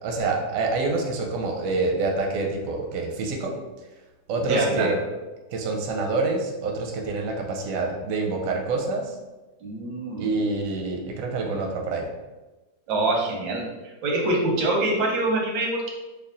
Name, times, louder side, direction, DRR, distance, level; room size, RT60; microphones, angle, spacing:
voice 1, 0.0-3.5 4.3-5.0 5.5-9.1 10.2-12.1, right 3 dB, 65° right, 1 dB, 0.9 m, -26 dB
voice 2, 4.4-5.0 9.6-10.3 12.9-13.7 14.0-15.9, right 2 dB, 90° right, 0 dB, 1.5 m, -25 dB
3.4 x 2.3 x 3.7 m, 1.1 s
omnidirectional pair, 1.9 m